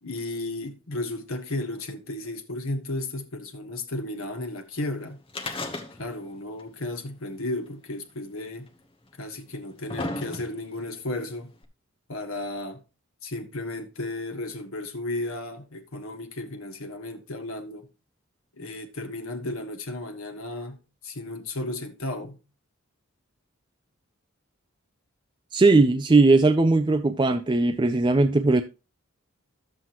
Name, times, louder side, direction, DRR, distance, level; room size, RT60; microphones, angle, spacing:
voice 1, 0.0-5.2 6.0-8.7 9.2-11.5 12.1-12.8 13.2-17.9 18.5-22.4, left 2 dB, 75° left, 1.5 m, -34 dB
sound 1, 5.3-6.3 6.6-6.7 7.7-7.8 8.7-8.8 9.4-10.8 11.6-11.7, left 2 dB, 25° left, 1.0 m, -34 dB
voice 2, 25.5-28.6, right 3 dB, 20° right, 0.4 m, -19 dB
11.5 x 7.6 x 3.0 m
head